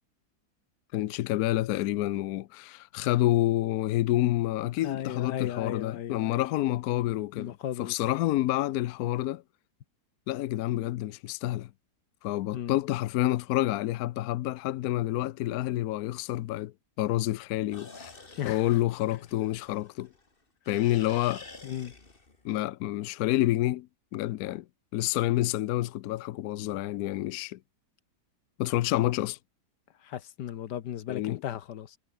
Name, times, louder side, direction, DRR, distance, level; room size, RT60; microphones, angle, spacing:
voice 1, 0.9-7.5 7.8-9.4 10.3-11.7 12.2-18.1 18.4-20.1 20.7-21.4 22.4-23.9 24.1-24.6 24.9-27.6 28.6-29.4 31.1-31.4, left 15 dB, 70° left, 1.0 m, -28 dB
voice 2, 4.8-6.5 7.4-8.1 12.5-12.8 18.4-18.8 21.6-21.9 30.0-32.0, left 10 dB, 85° left, 1.7 m, -36 dB
sound 1, 17.7-20.3 20.6-22.5, left 3 dB, 30° left, 2.7 m, -49 dB
omnidirectional pair, 1.8 m